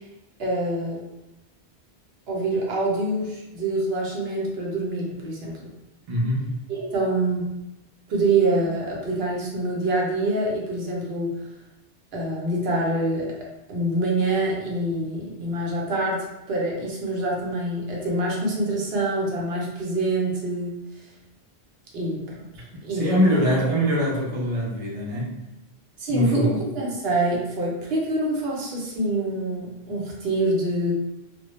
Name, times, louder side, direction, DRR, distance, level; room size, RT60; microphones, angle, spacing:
voice 1, 0.4-1.0 2.3-5.6 6.7-7.5 8.1-11.3 12.1-13.3 13.7-20.7 21.9-22.2 22.8-23.1 26.0-30.9, right 2 dB, 70° right, -3 dB, 0.8 m, -25 dB
voice 2, 6.1-6.5 22.9-25.3 26.1-26.6, equal, 45° right, -3 dB, 0.5 m, -23 dB
2.1 x 2.0 x 2.9 m, 0.90 s
omnidirectional pair, 1.1 m